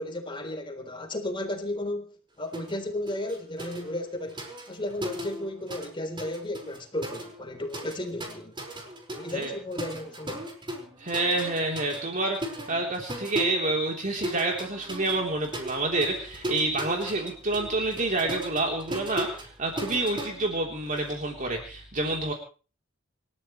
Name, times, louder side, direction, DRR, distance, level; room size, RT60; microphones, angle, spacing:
voice 1, 0.0-2.1 2.4-8.6 9.1-10.5, left 1 dB, 25° left, 4 dB, 3.7 m, -34 dB
sound 1, 2.5-2.8 3.1-5.9 6.2-21.1, equal, 25° right, 5.0 m, -38 dB
voice 2, 11.0-22.3, right 2 dB, 40° right, 1 dB, 3.5 m, -28 dB
28.5 x 14.0 x 3.2 m, 0.38 s
head